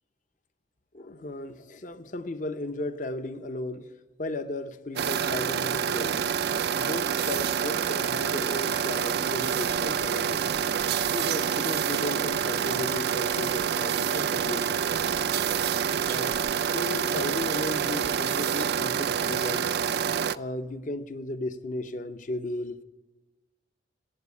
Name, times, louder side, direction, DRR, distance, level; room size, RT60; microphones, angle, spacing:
voice 1, 0.9-3.9 4.2-6.2 6.7-10.4 11.1-14.8 16.1-16.4 16.6-19.7 20.3-22.8, left 2 dB, 45° left, 0.7 m, -35 dB
sound 1, 5.0-20.4, right 8 dB, 55° right, 0.4 m, -27 dB
15.5 x 9.0 x 9.6 m
head